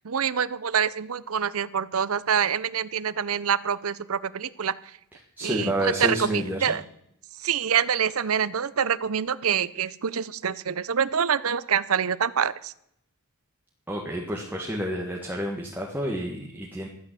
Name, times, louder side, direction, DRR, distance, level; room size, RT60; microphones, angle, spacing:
voice 1, 0.0-4.7 5.4-6.8 7.4-12.7, right 7 dB, 75° right, 18 dB, 0.7 m, -26 dB
voice 2, 5.4-6.8 13.9-16.9, equal, 10° right, -2 dB, 1.8 m, -29 dB
14.0 x 9.6 x 7.6 m, 0.72 s
head